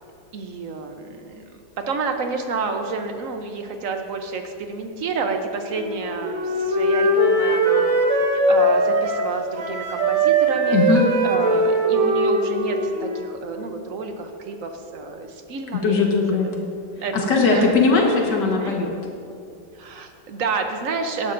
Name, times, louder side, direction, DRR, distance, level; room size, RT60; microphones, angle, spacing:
voice 1, 0.3-1.6 1.9-7.9 8.5-10.8 11.2-16.2 17.0-17.7 18.3-18.7 19.8-21.3, right 4 dB, 55° right, 5 dB, 1.0 m, -29 dB
Wind instrument woodwind instrument, 5.8-9.3 9.6-13.4, right 1 dB, 80° right, 2.1 m, -20 dB
voice 2, 10.7-11.0 15.8-16.6 17.1-18.9, left 4 dB, 65° left, 0 dB, 2.0 m, -19 dB
17.5 x 11.0 x 2.6 m, 2.5 s
omnidirectional pair, 2.1 m